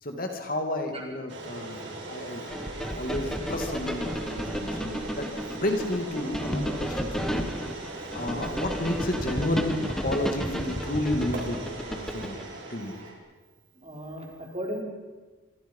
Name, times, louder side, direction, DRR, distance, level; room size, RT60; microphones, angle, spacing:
voice 1, 0.0-2.5 2.9-7.5 7.9-11.6 11.9-12.4 12.7-13.0, left 1 dB, 45° left, 4 dB, 2.5 m, -31 dB
sound 1, 1.3-13.1, right 2 dB, 60° right, 4.7 m, -39 dB
sound 2, 2.5-12.5, equal, ahead, 1.4 m, -33 dB
voice 2, 13.8-14.8, equal, 30° right, 0 dB, 4.4 m, -36 dB
26.5 x 24.0 x 5.6 m, 1.3 s
head